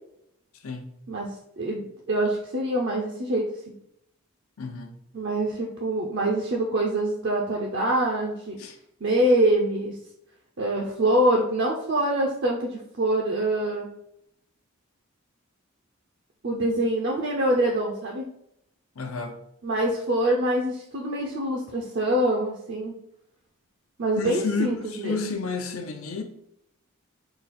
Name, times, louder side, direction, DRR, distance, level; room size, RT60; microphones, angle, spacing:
voice 1, 0.5-0.9 4.6-5.0 8.6-8.8 18.9-19.4 24.2-26.2, left 4 dB, 75° left, 6 dB, 0.6 m, -31 dB
voice 2, 1.1-3.5 5.1-8.6 9.0-10.0 10.6-13.9 16.4-18.3 19.6-22.9 24.0-25.2, right 1 dB, 55° right, -1 dB, 0.5 m, -25 dB
3.9 x 2.4 x 4.1 m, 0.78 s
head